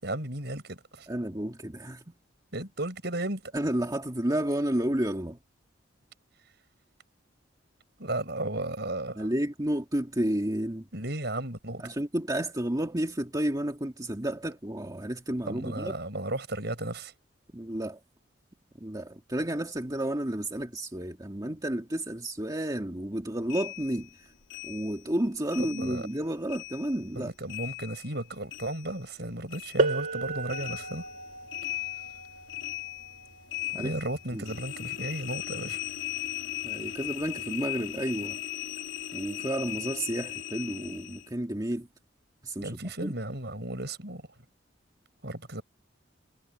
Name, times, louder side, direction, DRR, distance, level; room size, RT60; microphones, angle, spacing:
voice 1, 0.0-1.1 2.5-3.5 8.0-9.3 10.9-11.8 15.5-17.1 25.6-26.1 27.1-31.0 33.7-35.8 42.6-44.3 45.2-45.6, right 1 dB, 60° right, 7.1 m, -34 dB
voice 2, 1.1-2.1 3.5-5.4 9.2-10.9 11.8-16.0 17.5-18.0 18.8-24.3 24.6-27.3 33.7-33.9 34.3-34.4 36.6-38.4 39.1-41.9 42.4-43.2, right 1 dB, 20° right, 2.1 m, -31 dB
sound 1, 23.5-26.2 26.5-29.2 29.5-41.3, left 14 dB, 70° left, 3.5 m, -38 dB
sound 2, 29.8-35.2 36.3-36.4 37.2-37.4, right 2 dB, 45° right, 2.8 m, -34 dB
head